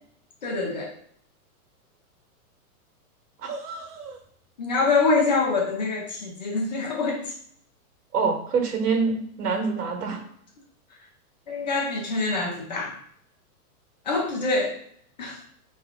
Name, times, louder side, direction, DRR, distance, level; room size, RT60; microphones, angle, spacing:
voice 1, 0.4-0.9 4.6-7.4 11.5-12.9 14.1-14.8 15.2-15.4, left 3 dB, 30° left, 0 dB, 0.6 m, -25 dB
voice 2, 3.4-4.2 8.1-10.2, right 5 dB, 90° right, 3 dB, 1.5 m, -26 dB
4.3 x 3.2 x 3.7 m, 0.66 s
supercardioid pair, 175°, 46 cm